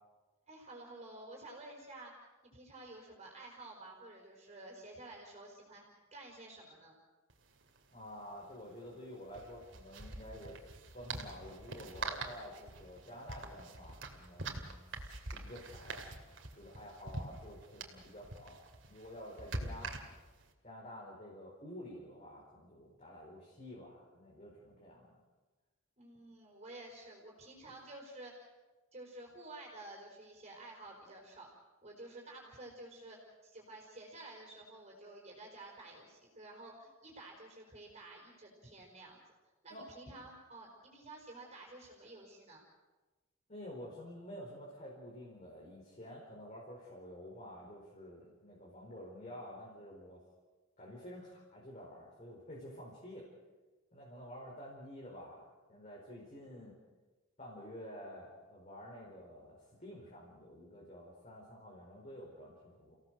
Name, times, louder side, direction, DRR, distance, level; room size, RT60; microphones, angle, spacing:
voice 1, 0.5-2.1 2.4-6.9 26.0-28.5 28.9-31.5 31.8-39.2 39.6-42.6, right 2 dB, 35° right, -1 dB, 5.0 m, -51 dB
sound 1, 7.3-7.4 7.6-7.8 9.2-20.5, right 3 dB, 60° right, 2.6 m, -45 dB
voice 2, 7.9-15.0 15.3-16.0 16.6-18.6 18.9-19.9 20.6-25.2 39.7-39.8 43.5-50.2 50.8-53.3 53.9-56.8 57.4-63.0, equal, 35° left, -4 dB, 4.8 m, -50 dB
30.0 x 17.0 x 6.5 m, 1.2 s
head